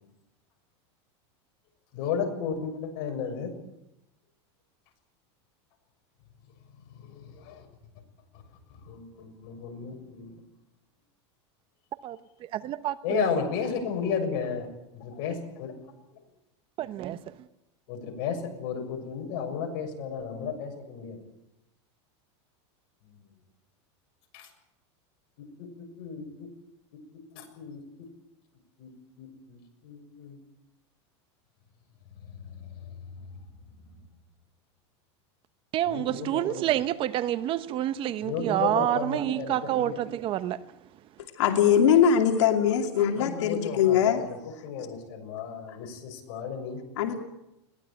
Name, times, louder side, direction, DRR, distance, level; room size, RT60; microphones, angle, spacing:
voice 1, 1.9-3.6 7.0-7.7 8.7-10.4 13.0-14.7 14.9-15.7 17.9-21.2 23.0-23.2 24.3-24.5 26.0-26.5 27.3-27.8 28.8-28.9 29.2-30.4 32.3-33.3 35.8-36.7 38.2-40.0 43.2-46.8, left 6 dB, 55° left, 6.8 m, -34 dB
voice 2, 12.5-13.4 16.8-17.2 35.7-40.6, right 12 dB, 35° right, 1.0 m, -28 dB
voice 3, 41.4-44.2 44.8-44.9 47.0-47.1, left 8 dB, 80° left, 2.6 m, -22 dB
21.5 x 18.0 x 9.2 m
supercardioid pair, 140°, 15 cm